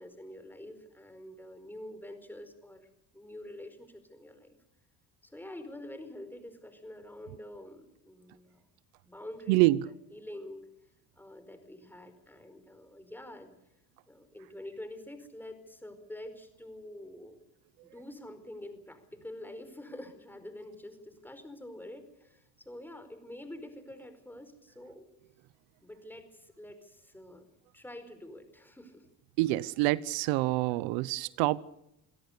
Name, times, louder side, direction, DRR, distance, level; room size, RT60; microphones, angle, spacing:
voice 1, 0.0-2.9 3.1-4.6 5.2-8.7 9.0-9.8 10.1-10.7 11.2-13.5 14.1-17.4 17.8-25.1 25.8-27.5 27.7-29.1, left 1 dB, 5° left, 9 dB, 4.8 m, -47 dB
voice 2, 9.5-9.9 29.4-31.6, right 18 dB, 85° right, 19 dB, 0.9 m, -26 dB
28.5 x 17.5 x 6.8 m, 0.85 s
cardioid pair, 115°, 36 cm